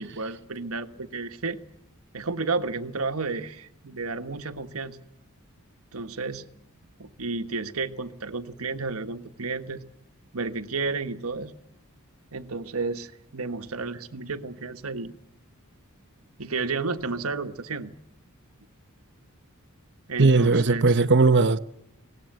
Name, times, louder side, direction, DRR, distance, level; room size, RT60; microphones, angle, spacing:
voice 1, 0.0-1.6 2.1-5.0 5.9-6.4 7.0-9.8 10.3-11.5 12.3-15.1 16.4-17.9 20.1-20.9, right 4 dB, 80° right, 1.4 m, -32 dB
voice 2, 20.2-21.6, right 3 dB, 55° right, 0.9 m, -18 dB
23.0 x 19.0 x 8.0 m
head